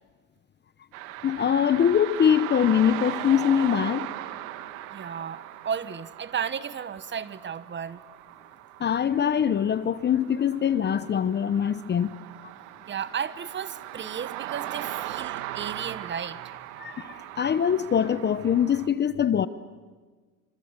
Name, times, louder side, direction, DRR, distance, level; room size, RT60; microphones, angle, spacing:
sound 1, 0.9-18.9, right 14 dB, 75° right, 2.0 m, -39 dB
voice 1, 1.2-4.1 8.8-12.1 16.8-19.5, left 8 dB, 25° left, 0.8 m, -23 dB
voice 2, 4.9-8.0 12.9-16.5, right 7 dB, 25° right, 1.2 m, -34 dB
26.5 x 25.5 x 8.1 m
supercardioid pair, 115°, 42 cm